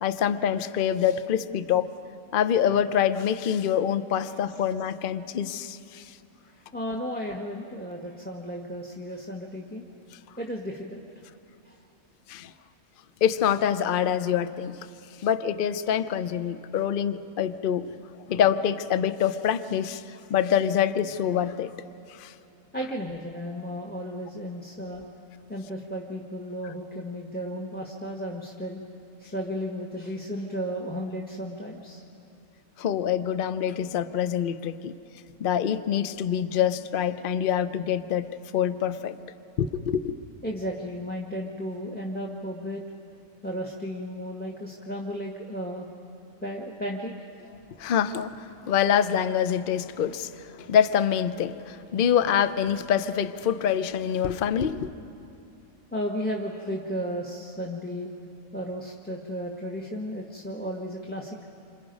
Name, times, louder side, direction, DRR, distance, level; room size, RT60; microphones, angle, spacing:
voice 1, 0.0-1.9 2.3-6.2 12.3-12.5 13.2-14.8 15.2-17.9 18.3-20.0 20.3-21.7 22.2-22.3 32.8-34.9 35.4-39.2 39.6-40.1 47.8-50.3 50.6-54.9, left 9 dB, 50° left, 12 dB, 0.7 m, -25 dB
voice 2, 6.5-9.9 10.4-11.0 11.6-11.8 22.7-25.1 25.5-28.8 29.2-32.0 40.4-42.8 43.4-45.9 46.4-47.5 55.9-58.1 58.5-61.4, equal, 5° left, 0 dB, 1.2 m, -34 dB
28.0 x 26.0 x 5.3 m, 2.6 s
omnidirectional pair, 1.4 m